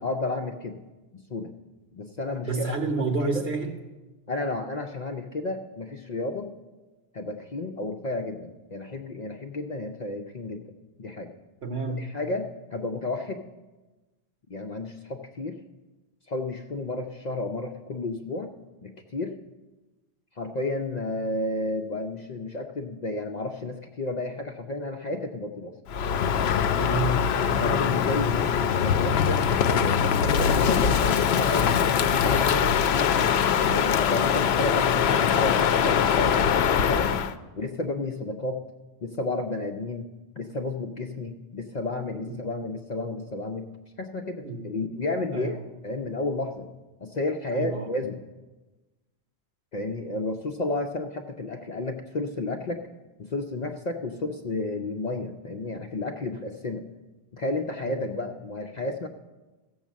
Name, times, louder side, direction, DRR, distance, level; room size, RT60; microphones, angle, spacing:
voice 1, 0.0-0.8 1.1-1.5 1.9-3.4 4.3-6.5 7.1-11.3 12.0-13.5 14.5-15.6 16.3-18.5 18.8-19.4 20.3-25.8 27.6-31.7 32.2-33.2 33.6-37.1 37.6-38.6 39.0-40.1 40.4-43.7 44.0-45.6 45.8-46.7 47.0-48.2 49.7-52.8 53.2-56.9 57.3-59.1, left 2 dB, 50° left, 3 dB, 0.6 m, -32 dB
voice 2, 2.4-3.7 11.6-12.1 26.8-27.2 28.3-28.5 42.3-42.4 44.4-44.6 45.3-45.6 47.5-47.8 57.8-58.0, right 3 dB, 70° right, 4 dB, 1.3 m, -29 dB
Crow, 25.9-37.3, left 7 dB, 80° left, 0.8 m, -22 dB
15.0 x 6.3 x 7.3 m, 1.2 s
omnidirectional pair, 1.1 m